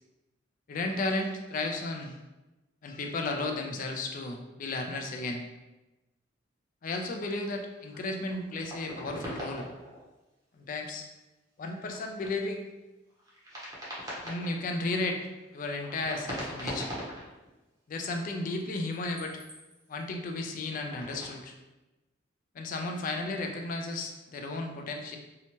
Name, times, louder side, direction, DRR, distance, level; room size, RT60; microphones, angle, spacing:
voice 1, 0.7-2.1 2.8-5.4 6.8-9.7 10.5-11.1 11.6-12.7 14.2-15.2 15.5-16.9 17.9-19.4 19.9-21.5 22.5-25.2, left 2 dB, 45° left, 4 dB, 0.3 m, -34 dB
sound 1, 7.3-7.4 7.8-10.0 10.6-10.7 11.7-12.3 13.1-14.7 15.5-17.5 18.6-20.0 20.5-21.4, equal, 20° right, 0.7 m, -41 dB
2.8 x 2.1 x 2.8 m, 1.0 s
head